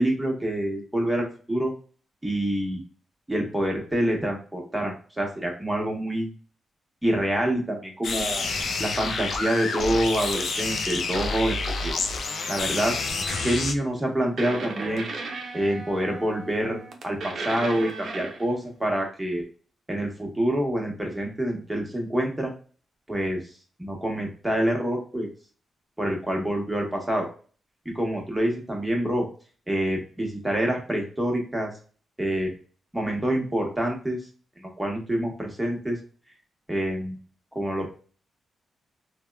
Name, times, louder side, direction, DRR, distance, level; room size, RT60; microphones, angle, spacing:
voice 1, 0.0-1.7 2.2-2.8 3.3-6.3 7.0-8.4 8.8-11.9 12.5-12.9 13.4-15.1 15.5-19.4 19.9-22.5 23.1-23.4 23.8-25.3 26.0-27.3 27.9-29.3 29.7-31.7 32.2-32.5 32.9-34.2 34.6-36.0 36.7-37.2 37.5-37.9, right 1 dB, 10° right, -1 dB, 1.0 m, -26 dB
sound 1, 8.0-13.7, left 3 dB, 75° left, 0.4 m, -28 dB
sound 2, 13.3-13.7 14.4-18.6, right 3 dB, 65° right, 0.5 m, -36 dB
2.8 x 2.1 x 2.2 m, 0.39 s
cardioid pair, 65°, 0 cm